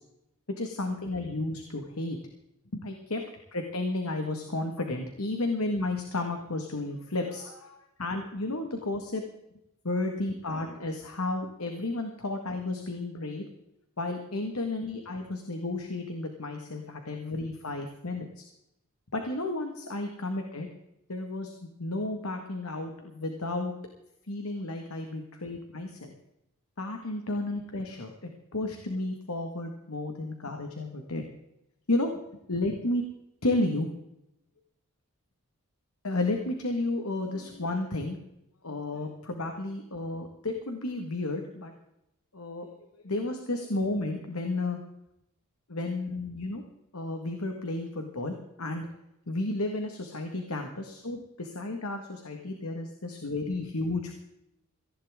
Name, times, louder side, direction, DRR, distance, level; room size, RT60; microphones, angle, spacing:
voice 1, 0.6-2.2 2.7-3.3 3.5-9.2 9.8-13.4 14.0-18.4 19.1-20.7 21.1-23.7 24.3-26.2 26.8-28.1 28.5-31.2 31.9-32.1 32.5-33.0 33.4-33.9 36.0-38.2 38.6-41.7 42.3-42.7 43.0-44.8 45.7-46.6 46.9-48.9 49.3-54.1, left 2 dB, 70° left, 4 dB, 1.7 m, -32 dB
18.0 x 15.5 x 3.7 m, 0.85 s
head